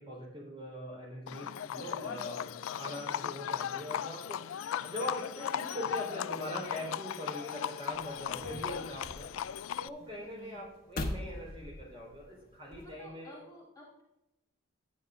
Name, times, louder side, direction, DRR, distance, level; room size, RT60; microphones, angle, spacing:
voice 1, 0.0-2.5 2.8-9.5 9.8-13.4, left 1 dB, 25° right, -2 dB, 4.1 m, -42 dB
Livestock farm animals working animals, 1.3-9.9, left 9 dB, 80° left, 0.3 m, -37 dB
voice 2, 1.7-2.2 8.3-8.6 10.3-10.6 12.8-14.0, left 1 dB, 15° left, -4 dB, 1.7 m, -53 dB
sound 1, 7.9-13.0, left 1 dB, 50° left, 1.3 m, -43 dB
12.5 x 9.0 x 2.6 m, 0.91 s
head